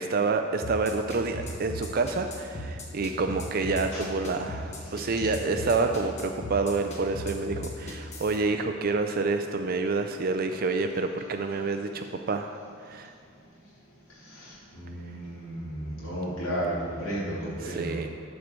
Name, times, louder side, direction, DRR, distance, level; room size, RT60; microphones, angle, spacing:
voice 1, 0.0-12.5 12.8-13.1 17.6-18.1, right 3 dB, 45° right, 6 dB, 0.4 m, -28 dB
sound 1, 0.6-8.4, equal, 35° left, 1.4 m, -36 dB
voice 2, 14.1-18.0, right 1 dB, 90° left, -8 dB, 2.5 m, -34 dB
13.0 x 4.5 x 6.7 m, 2.4 s
head